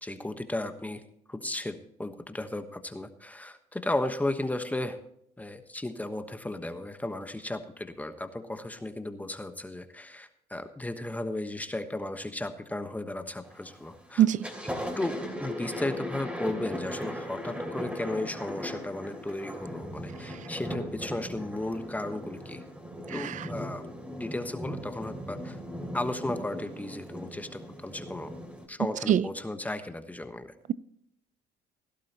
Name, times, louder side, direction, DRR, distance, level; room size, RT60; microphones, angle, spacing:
voice 1, 0.0-1.0 1.3-5.0 5.4-14.3 15.0-22.6 23.1-23.9 24.2-25.6 25.9-28.3 28.7-30.5, left 1 dB, 10° left, 8 dB, 1.2 m, -35 dB
Thunder, 13.4-13.8 14.2-28.6, equal, 10° right, 2.9 m, -38 dB
voice 2, 23.1-23.4 29.1-29.2, right 11 dB, 45° right, 19 dB, 0.5 m, -23 dB
17.0 x 11.5 x 2.9 m, 0.73 s
cardioid pair, 110°, 17 cm